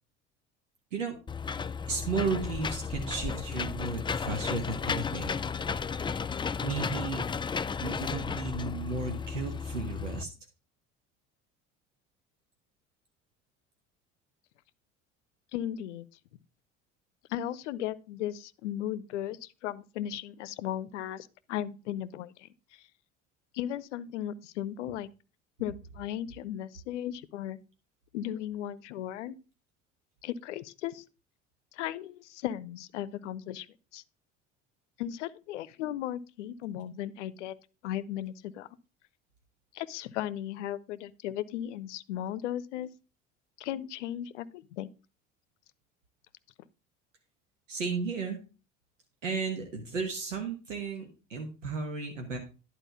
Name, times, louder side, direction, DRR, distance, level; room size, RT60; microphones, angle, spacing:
Engine / Mechanisms, 1.3-10.2, left 6 dB, 15° left, 0.4 m, -34 dB
voice 1, 1.8-5.3 6.6-7.2 7.8-10.3 47.7-48.4 49.2-52.4, right 4 dB, 90° right, 1.3 m, -34 dB
voice 2, 15.5-16.1 17.3-22.8 23.5-25.1 25.6-27.6 28.1-29.4 30.2-31.0 31.7-33.7 33.9-34.0 35.0-37.6 37.8-38.7 39.7-42.9 43.6-44.9, left 11 dB, 80° left, 0.6 m, -36 dB
11.5 x 4.4 x 5.5 m
hypercardioid pair, 60°, 36 cm